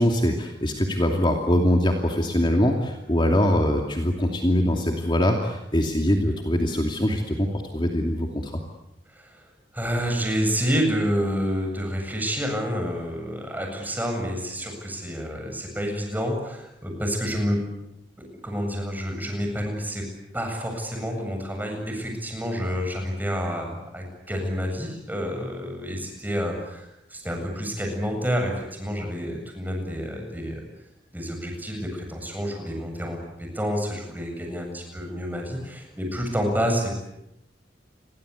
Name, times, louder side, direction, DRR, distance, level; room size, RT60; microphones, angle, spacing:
voice 1, 0.0-8.6, left 1 dB, 25° left, 2 dB, 2.7 m, -23 dB
voice 2, 9.1-9.4 9.7-17.6 18.2-20.0 20.3-30.6 31.1-37.0, equal, 10° right, 3 dB, 7.8 m, -29 dB
29.5 x 23.0 x 8.4 m, 0.86 s
head